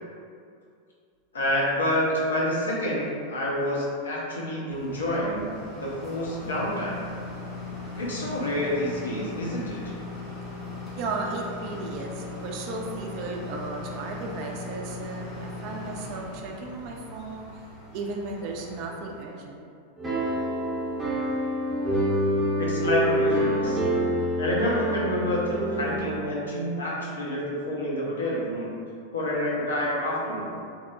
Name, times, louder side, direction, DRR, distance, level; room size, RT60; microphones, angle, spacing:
voice 1, 1.3-5.5 5.8-7.0 8.0-9.9 22.6-23.8 24.4-28.7 29.1-30.5, left 1 dB, 70° left, -5 dB, 0.6 m, -28 dB
sound 1, 4.7-19.4, left 2 dB, 30° left, 0.6 m, -39 dB
voice 2, 11.0-17.5 17.9-19.7, right 3 dB, 45° right, 0 dB, 0.3 m, -35 dB
sound 2, 20.0-26.2, equal, 15° right, 0.7 m, -26 dB
2.9 x 2.0 x 2.3 m, 2.3 s
figure-of-eight pair, 90°, 0 cm